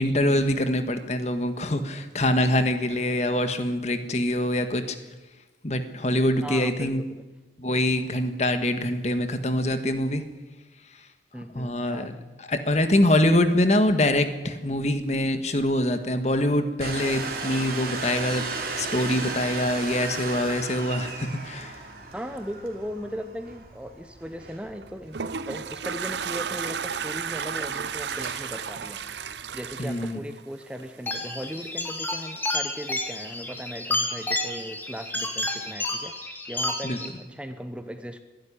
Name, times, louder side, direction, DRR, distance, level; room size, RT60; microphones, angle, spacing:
voice 1, 0.0-5.0 5.6-7.0 7.6-10.2 11.5-12.1 12.5-18.4 18.8-21.7 29.8-30.2 36.8-37.0, left 1 dB, 40° left, 9 dB, 1.6 m, -24 dB
voice 2, 6.4-7.2 11.3-12.1 22.1-29.0 29.5-36.1 36.5-38.2, equal, 5° right, 8 dB, 0.9 m, -38 dB
Domestic sounds home sounds, 16.8-29.9, right 3 dB, 55° right, 3.4 m, -36 dB
Toilet flush, 24.8-31.1, right 6 dB, 75° right, 0.7 m, -33 dB
sound 1, 31.1-37.1, left 2 dB, 10° left, 2.4 m, -30 dB
22.0 x 12.0 x 10.0 m, 1.2 s
head